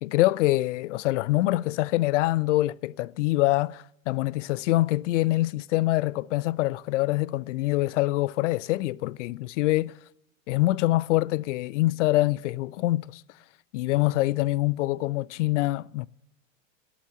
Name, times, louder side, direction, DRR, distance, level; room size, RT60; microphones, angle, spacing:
voice 1, 0.0-9.9 10.5-13.2 13.7-16.1, left 18 dB, 60° left, 0.5 m, -25 dB
11.5 x 7.1 x 7.9 m
hypercardioid pair, 100°, 41 cm